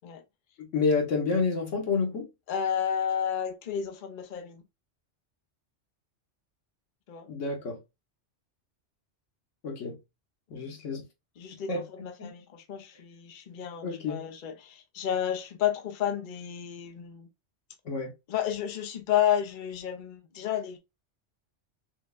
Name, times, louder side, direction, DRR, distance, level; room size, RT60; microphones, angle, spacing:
voice 1, 0.6-2.3 7.3-7.8 9.6-10.0 10.5-11.1 11.7-12.3 13.8-14.2 17.8-18.1, left 4 dB, 90° left, 1.5 m, -29 dB
voice 2, 2.5-4.6 7.1-7.3 10.5-10.7 11.4-17.3 18.3-20.8, left 9 dB, 50° left, 0.7 m, -31 dB
6.0 x 2.2 x 2.4 m
omnidirectional pair, 1.2 m